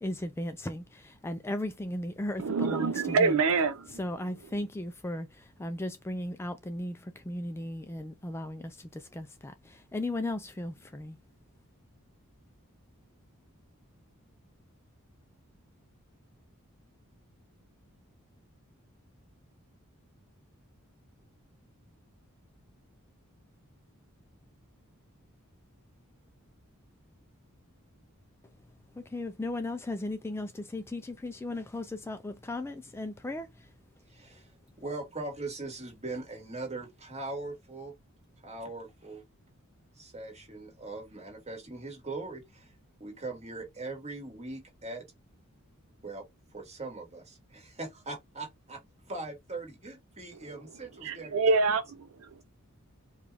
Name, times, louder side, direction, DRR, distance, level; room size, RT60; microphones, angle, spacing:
voice 1, 0.0-3.3 4.0-11.2 28.9-33.7, left 1 dB, 10° left, 0.3 m, -36 dB
voice 2, 2.4-4.0 50.3-50.5 51.0-52.4, right 4 dB, 70° right, 0.5 m, -27 dB
voice 3, 34.1-34.5 34.8-37.9 38.4-39.2 40.0-42.7 43.0-45.0 46.0-46.2 46.5-48.8 49.1-51.4, right 2 dB, 30° right, 1.8 m, -40 dB
4.8 x 2.4 x 3.3 m
head